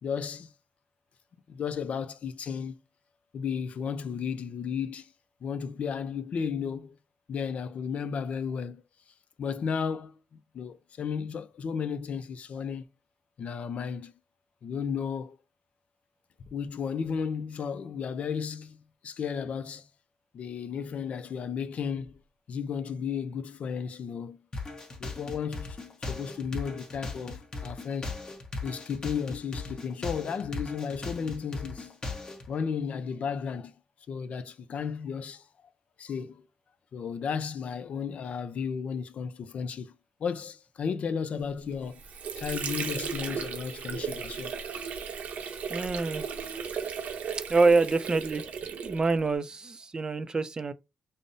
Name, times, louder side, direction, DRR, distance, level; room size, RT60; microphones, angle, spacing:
voice 1, 0.0-0.5 1.5-2.8 3.3-5.1 5.4-7.0 7.3-8.8 9.4-10.1 10.5-12.9 13.4-14.1 14.6-15.4 16.5-18.8 19.0-19.9 20.3-22.2 22.5-24.4 25.0-28.1 28.6-31.9 32.5-33.7 34.1-35.5 36.0-36.5 36.9-39.9 40.2-42.0 42.4-44.6, left 6 dB, 60° left, 0.4 m, -34 dB
sound 1, 24.5-32.5, left 3 dB, 30° left, 0.9 m, -38 dB
Water / Sink (filling or washing), 41.7-49.3, right 6 dB, 80° right, 0.7 m, -36 dB
voice 2, 45.7-46.2 47.5-48.5 48.8-50.7, right 3 dB, 30° right, 0.4 m, -26 dB
5.2 x 2.0 x 2.6 m
cardioid pair, 95°, 3 cm